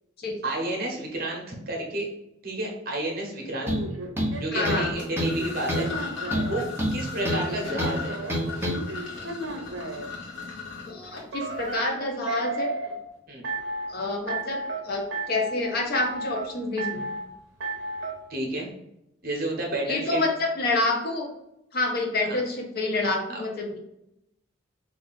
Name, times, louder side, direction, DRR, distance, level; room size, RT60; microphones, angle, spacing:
voice 1, 0.4-2.0 2.4-3.7 4.4-5.9 6.5-8.2 13.3-13.4 18.3-18.7 19.2-20.2 22.2-22.4 23.3-23.4, right 1 dB, 50° right, 0 dB, 1.0 m, -31 dB
sound 1, 3.6-6.6 7.1-10.1 11.3-13.0 13.4-13.9 14.3-14.8 15.1-15.6 15.9-16.5 16.8-17.2 17.6-18.1, right 2 dB, 70° right, 0.7 m, -33 dB
sound 2, 3.7-3.9 4.2-4.9 5.2-5.4 5.7-5.9 6.3-7.5 7.8-8.0 8.3-8.8, equal, 10° right, 0.8 m, -27 dB
voice 2, 4.5-4.9 7.6-7.8 10.9-12.7 13.9-17.1 19.9-21.3 21.7-23.8, left 2 dB, 50° left, 2 dB, 0.7 m, -28 dB
sound 3, 4.9-11.8, left 5 dB, 70° left, 1.4 m, -38 dB
3.1 x 2.5 x 3.9 m, 0.82 s
head